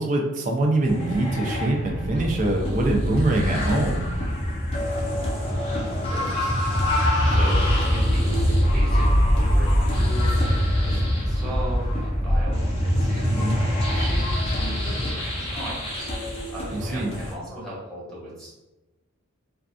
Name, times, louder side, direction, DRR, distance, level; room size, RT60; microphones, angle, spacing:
voice 1, 0.0-4.1 13.2-13.5 16.7-17.1, right 2 dB, 35° right, 1 dB, 0.4 m, -24 dB
sound 1, 0.9-17.3, equal, 25° left, 0.4 m, -23 dB
voice 2, 6.1-6.5 7.3-7.6 7.9-10.6 10.8-16.1 16.5-18.5, right 1 dB, 5° left, -8 dB, 0.9 m, -37 dB
2.5 x 2.3 x 2.4 m, 1.0 s
head